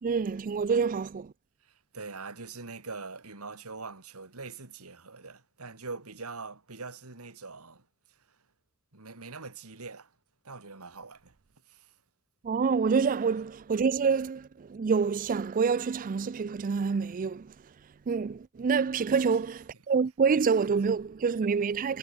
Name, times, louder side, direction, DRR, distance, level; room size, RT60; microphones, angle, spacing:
voice 1, 0.0-1.3 12.4-17.5 18.1-22.0, right 5 dB, 40° right, 0.4 m, -27 dB
voice 2, 1.9-7.8 8.9-10.1 10.4-11.4 11.7-11.9 19.1-19.3, right 4 dB, 90° right, 2.4 m, -43 dB
head